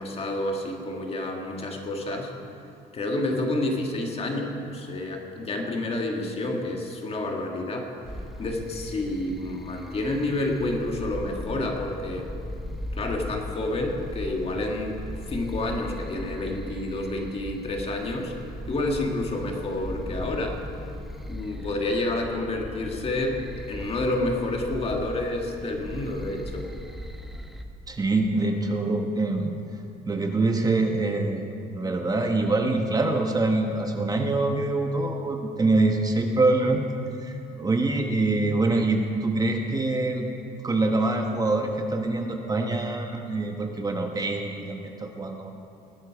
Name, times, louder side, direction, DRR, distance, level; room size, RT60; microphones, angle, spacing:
voice 1, 0.0-2.3 2.9-7.9 8.4-12.3 12.9-15.0 15.3-18.3 18.7-20.6 21.2-26.7, left 2 dB, 35° left, 1 dB, 1.9 m, -29 dB
sound 1, 8.0-27.6, equal, ahead, 0.9 m, -38 dB
voice 2, 27.9-29.5 30.0-31.4 31.7-36.8 37.2-40.3 40.6-45.5, right 2 dB, 20° right, 3 dB, 1.1 m, -25 dB
19.0 x 9.4 x 4.8 m, 2.6 s
cardioid pair, 110°, 17 cm